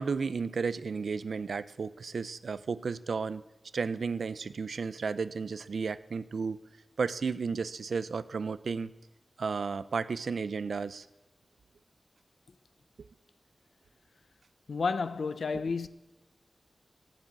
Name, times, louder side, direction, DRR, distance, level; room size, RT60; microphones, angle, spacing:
voice 1, 0.0-3.4 3.7-6.6 7.0-8.9 9.4-11.1, right 5 dB, 90° right, 0.4 m, -33 dB
voice 2, 14.7-15.9, left 4 dB, 90° left, 0.6 m, -31 dB
13.5 x 7.6 x 8.7 m
wide cardioid pair, 95°, 0 cm